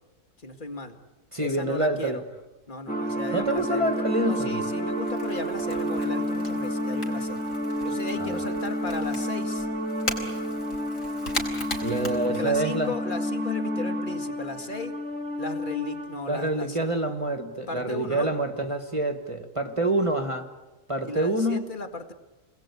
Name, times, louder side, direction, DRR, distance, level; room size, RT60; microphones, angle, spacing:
voice 1, 0.4-1.0 1.4-2.2 2.7-7.4 7.8-9.7 11.9-15.0 15.4-16.8 17.7-18.3 21.0-22.1, left 2 dB, 30° left, 6 dB, 2.1 m, -36 dB
voice 2, 1.3-2.2 3.3-4.6 8.2-8.4 11.8-12.9 16.3-20.5 20.9-21.7, right 1 dB, 20° right, 6 dB, 1.6 m, -27 dB
sound 1, 2.9-16.5, equal, 5° left, 1.8 m, -30 dB
Crackle / Crack, 3.4-13.0, left 1 dB, 55° left, 4.7 m, -39 dB
29.5 x 21.0 x 8.4 m, 1.1 s
omnidirectional pair, 1.7 m